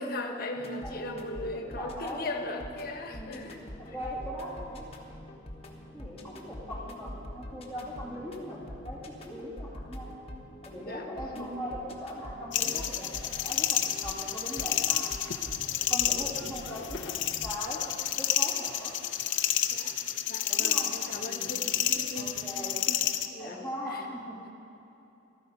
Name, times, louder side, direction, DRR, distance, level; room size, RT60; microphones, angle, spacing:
voice 1, 0.0-3.6 10.9-11.1 11.3-11.6 19.7-19.9 20.3-22.4 23.3-23.6 23.9-24.0, left 2 dB, 50° left, 4 dB, 1.3 m, -38 dB
sound 1, 0.5-17.5, left 1 dB, 30° left, 1.3 m, -45 dB
voice 2, 0.8-2.3 3.1-3.5 3.8-4.9 5.9-10.1 10.6-15.2 15.8-18.9 20.5-21.9 22.1-23.0 23.4-24.5, equal, 15° right, -9 dB, 2.8 m, -40 dB
sound 2, 12.5-23.3, left 11 dB, 75° left, 0.7 m, -30 dB
14.5 x 13.0 x 5.3 m, 3.0 s
head